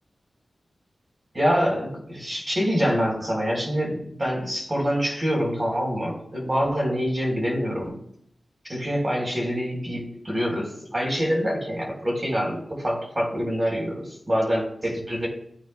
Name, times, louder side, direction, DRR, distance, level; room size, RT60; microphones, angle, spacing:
voice 1, 1.3-7.9 8.6-15.3, equal, 25° right, -1 dB, 4.4 m, -25 dB
16.5 x 8.9 x 2.4 m, 0.68 s
wide cardioid pair, 105°, 0 cm